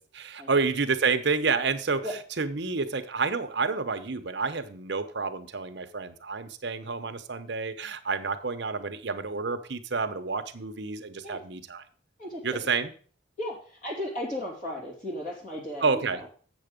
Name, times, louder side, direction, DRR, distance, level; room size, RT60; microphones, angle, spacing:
voice 1, 0.0-2.0 2.4-11.8 12.4-12.9 15.8-16.2, right 4 dB, 60° right, 9 dB, 0.8 m, -29 dB
voice 2, 12.2-12.7 13.4-16.3, left 1 dB, 40° left, -4 dB, 2.8 m, -35 dB
7.9 x 6.7 x 5.1 m, 0.42 s
head